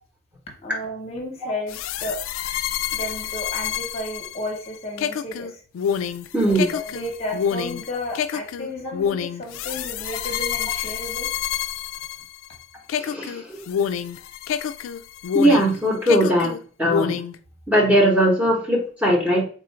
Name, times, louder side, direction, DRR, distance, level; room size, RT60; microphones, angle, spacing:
voice 1, 0.6-2.2 2.9-5.6 6.4-11.3, left 1 dB, 30° left, 1 dB, 0.8 m, -33 dB
sound 1, 1.7-12.6 12.9-15.8 16.1-17.4, left 8 dB, 85° left, 0.3 m, -27 dB
voice 2, 6.3-6.7 13.0-13.6 15.3-16.5 16.8-17.2 17.7-19.4, equal, 5° right, -2 dB, 0.9 m, -19 dB
3.6 x 2.4 x 4.4 m, 0.41 s
head